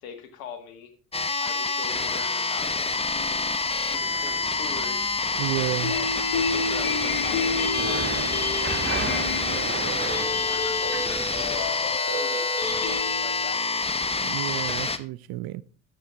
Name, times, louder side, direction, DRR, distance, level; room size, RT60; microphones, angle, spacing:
voice 1, 0.0-0.9 1.4-2.7 3.1-3.6 3.9-5.2 5.9-9.9 10.4-11.8 12.1-13.6, left 7 dB, 80° left, 1.6 m, -41 dB
sound 1, 1.1-15.0, left 3 dB, 15° left, 0.9 m, -27 dB
sound 2, 3.9-11.7, right 6 dB, 30° right, 1.0 m, -37 dB
voice 2, 5.4-5.9 14.2-15.6, right 18 dB, 60° right, 0.6 m, -30 dB
sound 3, 5.8-13.8, left 4 dB, 55° left, 2.4 m, -30 dB
11.5 x 7.7 x 3.5 m
hypercardioid pair, 55°, 42 cm